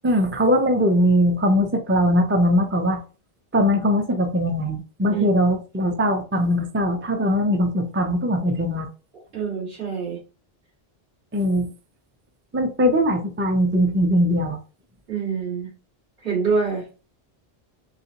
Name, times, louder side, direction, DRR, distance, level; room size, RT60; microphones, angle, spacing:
voice 1, 0.0-3.0 3.5-8.9 11.3-11.7 12.5-14.6, equal, 15° right, 4 dB, 0.4 m, -20 dB
voice 2, 9.3-10.2 15.1-15.7 16.2-16.8, right 5 dB, 70° right, -5 dB, 2.4 m, -25 dB
4.1 x 3.6 x 2.9 m, 0.34 s
omnidirectional pair, 1.1 m